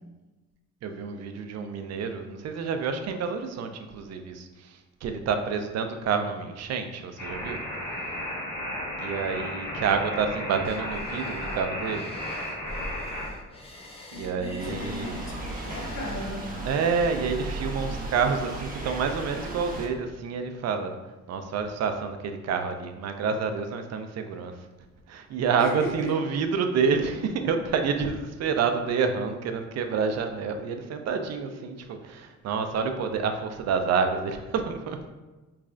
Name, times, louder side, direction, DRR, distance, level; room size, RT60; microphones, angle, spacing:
voice 1, 0.8-7.6 9.0-12.1 14.1-15.2 16.7-20.9 21.3-24.5 25.1-35.1, right 5 dB, 60° right, 6 dB, 0.5 m, -28 dB
sound 1, 7.2-13.2, left 1 dB, 80° left, 1.4 m, -34 dB
sound 2, 10.6-16.3, left 1 dB, 20° left, 0.6 m, -43 dB
voice 2, 14.1-16.5 25.6-26.2 31.5-31.7, left 1 dB, 65° left, -1 dB, 0.8 m, -37 dB
sound 3, 14.6-19.9, right 2 dB, 30° right, 0.7 m, -35 dB
3.6 x 3.2 x 2.4 m, 1.1 s
cardioid pair, 90°, 30 cm